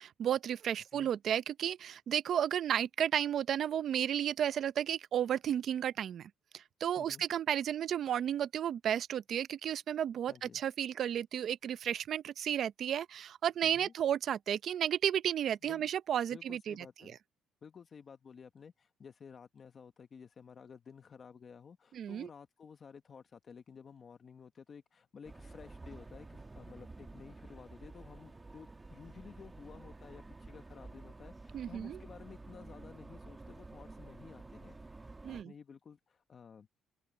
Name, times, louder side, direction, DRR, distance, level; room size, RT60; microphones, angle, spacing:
voice 1, 0.0-16.7 21.9-22.3 31.5-32.0 35.2-35.5, right 9 dB, 55° right, 0.6 m, -33 dB
voice 2, 10.3-10.6 13.6-13.9 15.6-15.9 16.3-17.2 17.6-36.7, left 6 dB, 40° left, 1.1 m, -54 dB
sound 1, 25.2-35.4, right 2 dB, 15° right, 1.5 m, -51 dB
open air
cardioid pair, 110°, 0 cm